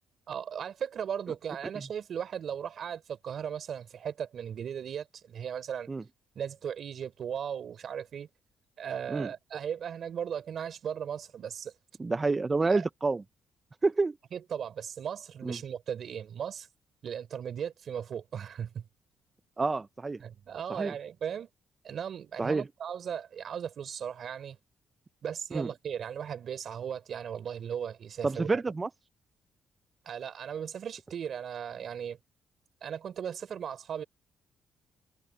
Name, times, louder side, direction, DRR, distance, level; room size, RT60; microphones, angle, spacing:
voice 1, 0.3-5.9 6.4-8.3 8.8-11.7 12.7-12.9 14.3-16.7 17.0-18.8 20.2-21.5 21.8-24.6 25.2-28.6 30.1-32.2 32.8-34.0, right 8 dB, 60° right, 3.7 m, -37 dB
voice 2, 12.0-13.2 13.8-14.2 15.4-15.6 19.6-20.2 20.7-20.9 22.4-22.7 25.5-25.7 28.2-28.9, right 3 dB, 25° right, 0.5 m, -28 dB
cardioid pair, 90°, 0 cm